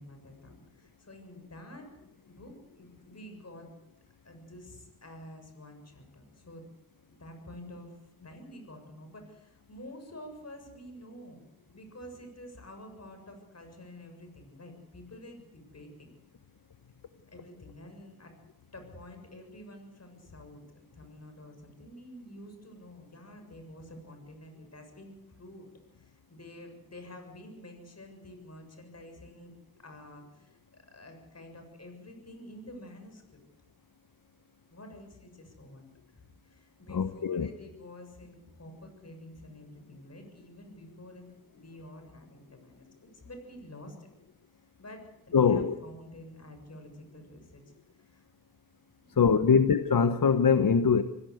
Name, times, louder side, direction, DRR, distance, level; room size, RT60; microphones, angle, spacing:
voice 1, 0.0-2.0 2.3-3.7 4.2-6.7 7.1-16.1 17.2-18.4 18.7-25.7 26.0-29.5 29.8-33.4 34.7-35.9 36.1-42.9 43.1-44.1 44.8-47.6 47.9-48.3 49.0-49.6, left 1 dB, 40° left, 7.0 m, -49 dB
voice 2, 36.9-37.5 45.3-45.7 49.2-51.0, left 6 dB, 60° left, 1.1 m, -23 dB
26.0 x 17.0 x 8.0 m
cardioid pair, 65°, 37 cm